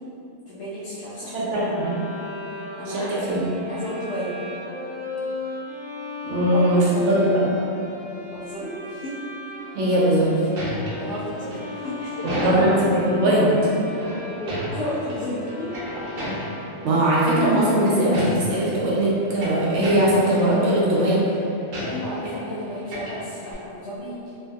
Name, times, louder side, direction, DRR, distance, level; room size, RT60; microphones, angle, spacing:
voice 1, 0.5-1.6 2.8-3.1 3.7-4.4 6.5-7.1 8.3-9.1 10.9-12.6 14.4-15.7 21.8-24.3, equal, 80° left, -10 dB, 0.9 m, -32 dB
voice 2, 1.3-2.0 2.9-3.4 6.2-7.3 9.7-10.4 12.2-13.5 16.8-21.2, right 1 dB, 70° right, -6 dB, 1.0 m, -20 dB
Bowed string instrument, 1.6-16.9, left 2 dB, 45° left, 1.3 m, -36 dB
sound 1, 10.2-13.0 13.9-15.2 15.5-16.7 17.3-17.7 18.0-18.7 19.1-20.5 20.8-21.1 21.7-22.5 22.8-23.5, equal, 90° right, 1.1 m, -33 dB
3.0 x 2.6 x 2.4 m, 2.9 s
omnidirectional pair, 1.3 m